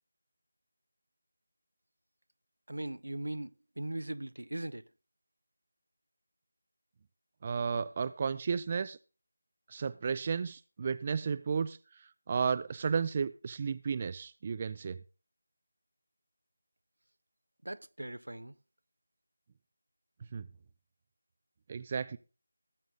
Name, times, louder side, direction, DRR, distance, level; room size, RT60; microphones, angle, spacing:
voice 1, 2.7-4.8 17.6-18.5, right 1 dB, 80° right, 1.0 m, -39 dB
voice 2, 7.4-9.0 9.7-11.8 12.3-15.0 20.3-20.5 21.7-22.2, right 6 dB, 30° right, 0.5 m, -33 dB
18.5 x 8.1 x 3.8 m
figure-of-eight pair, 165°, 0 cm